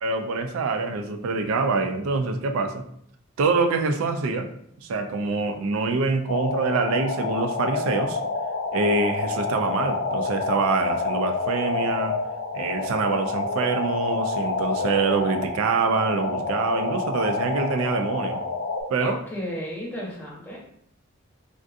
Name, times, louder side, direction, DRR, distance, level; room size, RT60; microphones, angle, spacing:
voice 1, 0.0-2.8 3.4-4.5 4.8-8.2 8.7-12.1 12.5-18.4 18.9-19.2, right 4 dB, 80° right, 6 dB, 0.3 m, -25 dB
sound 1, 6.3-18.8, left 3 dB, 70° left, 0.5 m, -28 dB
voice 2, 19.0-20.6, equal, 10° left, -6 dB, 0.8 m, -33 dB
3.5 x 2.6 x 2.4 m, 0.68 s
head